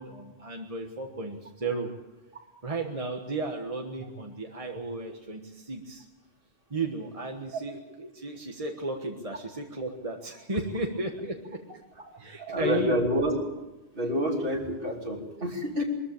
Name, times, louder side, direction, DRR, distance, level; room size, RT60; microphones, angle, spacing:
voice 1, 0.0-1.9 2.6-6.0 6.7-11.6 12.2-13.1, right 3 dB, 30° right, 2 dB, 1.6 m, -34 dB
voice 2, 12.4-13.3 13.9-15.8, equal, 55° right, 1 dB, 3.2 m, -28 dB
22.0 x 14.0 x 8.6 m, 1.1 s
omnidirectional pair, 1.1 m